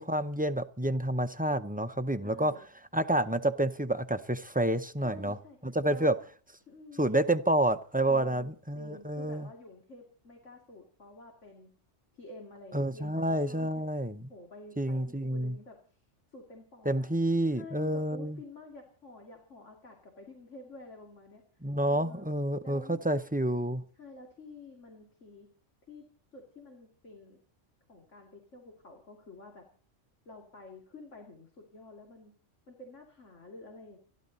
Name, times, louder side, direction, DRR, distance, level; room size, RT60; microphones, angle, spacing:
voice 1, 0.0-2.5 2.9-5.4 5.6-6.1 7.0-9.5 12.7-14.2 14.8-15.5 16.9-18.4 21.6-23.8, right 1 dB, 10° right, 0.4 m, -29 dB
voice 2, 2.2-2.6 5.0-5.6 5.9-6.2 6.7-7.1 8.1-11.7 12.1-13.7 14.3-16.0 16.3-17.1 17.5-21.4 21.9-22.3 22.6-23.0 24.0-25.5 25.9-26.0 26.3-27.4 27.9-29.6 30.3-32.3 32.7-34.0, left 2 dB, 80° left, 2.9 m, -50 dB
29.5 x 11.5 x 4.0 m
omnidirectional pair, 1.2 m